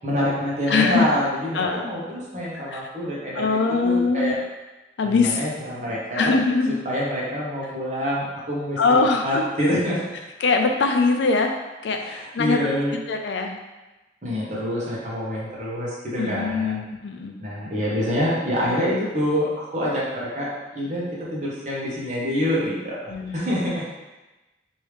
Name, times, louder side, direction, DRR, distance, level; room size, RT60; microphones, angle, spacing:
voice 1, 0.0-4.4 5.0-6.4 6.8-10.1 12.0-12.9 14.2-16.8 17.4-20.5 20.7-21.0 21.3-23.8, equal, 40° right, -6 dB, 0.9 m, -26 dB
voice 2, 0.7-1.1 1.5-1.8 2.5-2.9 3.3-4.4 5.0-5.4 6.1-6.8 8.8-9.4 10.4-11.5 11.8-12.6 13.1-13.6 16.2-17.4 23.1-23.6, left 4 dB, 75° left, 4 dB, 0.4 m, -22 dB
3.1 x 2.7 x 3.2 m, 1.1 s
head